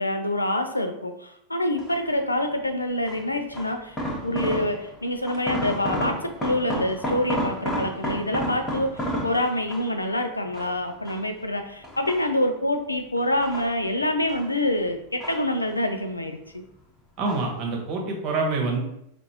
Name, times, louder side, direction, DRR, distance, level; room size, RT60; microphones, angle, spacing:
voice 1, 0.0-16.6, left 1 dB, 85° left, 6 dB, 0.4 m, -26 dB
sound 1, 1.8-2.2 3.1-5.0 5.2-10.0 10.5-11.4 11.8-12.7 13.2-14.5 14.8-16.0 16.2-16.8 17.2-17.6 17.9-18.0, equal, 15° left, 1.1 m, -31 dB
voice 2, 17.2-18.8, right 3 dB, 35° right, 0 dB, 1.0 m, -26 dB
5.1 x 2.5 x 2.8 m, 0.78 s
figure-of-eight pair, 90°, 0 cm